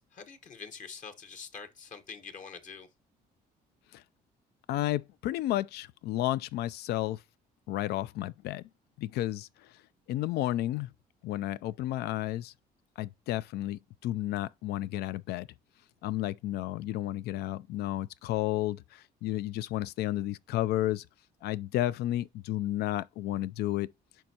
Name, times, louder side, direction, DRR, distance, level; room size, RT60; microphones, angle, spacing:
voice 1, 0.1-2.9, left 5 dB, 50° left, 1.1 m, -45 dB
voice 2, 4.7-7.2 7.7-8.6 9.0-9.5 10.1-10.9 11.2-12.5 13.0-15.5 16.0-21.0 21.4-23.9, left 14 dB, 75° left, 0.4 m, -32 dB
9.0 x 5.3 x 2.8 m
cardioid pair, 110°, 17 cm